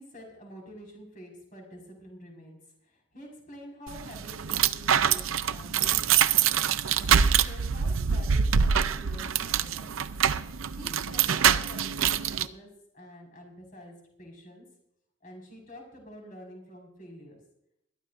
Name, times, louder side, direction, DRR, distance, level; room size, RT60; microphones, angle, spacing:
voice 1, 0.0-6.4 6.9-10.0 10.8-12.7 12.9-14.7 15.2-17.4, equal, 40° left, 0 dB, 5.3 m, -48 dB
sound 1, 3.9-12.5, right 8 dB, 75° right, 0.6 m, -25 dB
21.5 x 13.5 x 2.6 m, 0.77 s
head